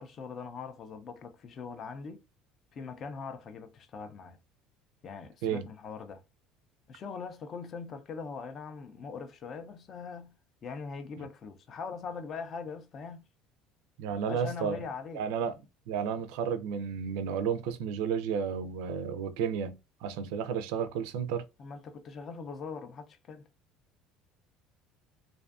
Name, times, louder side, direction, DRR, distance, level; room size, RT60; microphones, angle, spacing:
voice 1, 0.0-2.2 2.7-4.4 5.0-6.2 6.9-13.3 14.2-15.2 21.6-23.5, left 5 dB, 35° left, 0.4 m, -41 dB
voice 2, 14.0-14.8 15.1-15.5 15.9-21.4, right 7 dB, 80° right, 0.3 m, -32 dB
2.5 x 2.3 x 2.3 m
cardioid pair, 160°, 0 cm